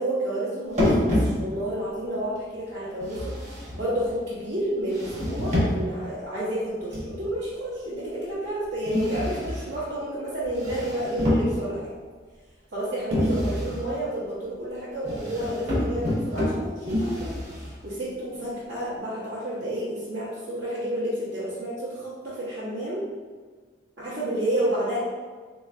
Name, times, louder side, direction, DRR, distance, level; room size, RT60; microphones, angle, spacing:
voice 1, 0.0-11.9 12.7-23.0 24.0-25.0, right 1 dB, 85° right, -11 dB, 1.0 m, -30 dB
sound 1, 0.7-1.8 3.0-4.2 4.9-6.0 6.9-7.4 8.9-9.8 10.4-11.9 13.1-13.9 15.0-17.8, left 1 dB, 40° right, 0.9 m, -27 dB
3.8 x 2.9 x 2.5 m, 1.5 s
head